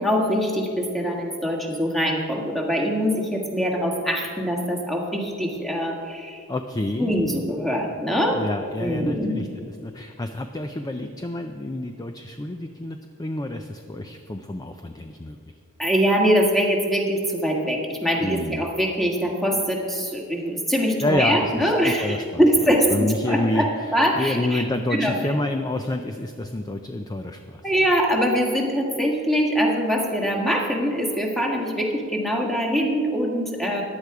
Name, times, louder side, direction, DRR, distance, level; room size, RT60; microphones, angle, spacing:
voice 1, 0.0-6.4 7.0-8.4 8.8-9.3 15.8-24.6 24.9-25.1 27.6-33.8, equal, ahead, -1 dB, 1.7 m, -23 dB
voice 2, 6.5-7.1 8.3-15.4 18.2-18.6 21.0-22.4 22.9-27.6, left 1 dB, 15° left, 6 dB, 0.5 m, -28 dB
15.0 x 10.5 x 4.8 m, 2.4 s
head